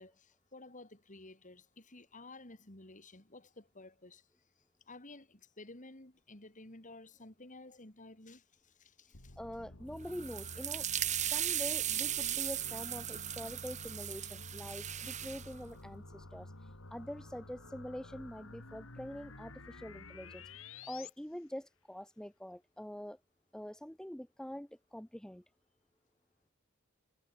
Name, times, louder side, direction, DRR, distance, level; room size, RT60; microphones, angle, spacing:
voice 1, 0.0-4.3 4.9-9.4, left 2 dB, 40° left, 3.5 m, -53 dB
sound 1, 9.1-21.1, left 2 dB, 70° left, 3.4 m, -51 dB
voice 2, 9.4-10.9 11.1-20.4 20.8-23.2 23.5-25.4, equal, 5° left, 0.6 m, -45 dB
sound 2, 10.1-15.5, right 11 dB, 35° right, 1.2 m, -37 dB
head